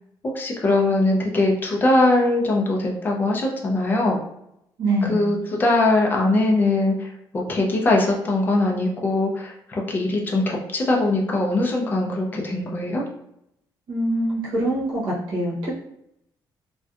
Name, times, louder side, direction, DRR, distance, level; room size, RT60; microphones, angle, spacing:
voice 1, 0.3-4.2 5.0-13.0, left 2 dB, 25° left, -1 dB, 0.4 m, -21 dB
voice 2, 4.8-5.2 13.9-15.8, right 1 dB, 80° right, -7 dB, 0.9 m, -24 dB
2.6 x 2.1 x 2.4 m, 0.78 s
cardioid pair, 165°, 8 cm